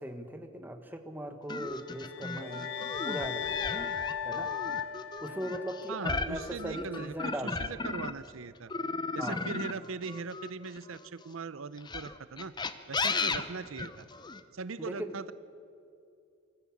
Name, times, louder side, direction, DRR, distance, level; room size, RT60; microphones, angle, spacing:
voice 1, 0.0-3.9 4.2-4.5 5.2-8.0 9.2-9.5 14.8-15.1, right 1 dB, 10° right, 6 dB, 1.3 m, -39 dB
sound 1, 1.5-8.3 8.7-11.1 11.8-14.4, left 3 dB, 20° left, 0.7 m, -35 dB
sound 2, 1.9-6.1, left 9 dB, 60° left, 0.4 m, -37 dB
sound 3, 2.4-6.8, equal, 30° right, 1.1 m, -47 dB
voice 2, 5.9-8.7 9.1-12.5 12.9-14.1 14.5-15.3, right 4 dB, 75° right, 15 dB, 0.6 m, -40 dB
24.5 x 14.5 x 8.5 m, 2.5 s
head